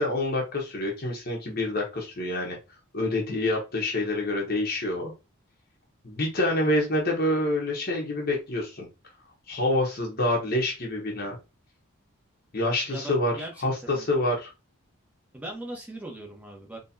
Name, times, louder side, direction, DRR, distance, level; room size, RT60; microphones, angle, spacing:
voice 1, 0.0-2.6 2.9-5.1 6.0-8.9 9.5-11.4 12.5-14.5, left 1 dB, 45° left, -1 dB, 1.0 m, -27 dB
voice 2, 12.9-14.1 15.3-16.8, right 1 dB, 5° right, 0 dB, 1.1 m, -39 dB
4.3 x 3.0 x 2.7 m, 0.26 s
head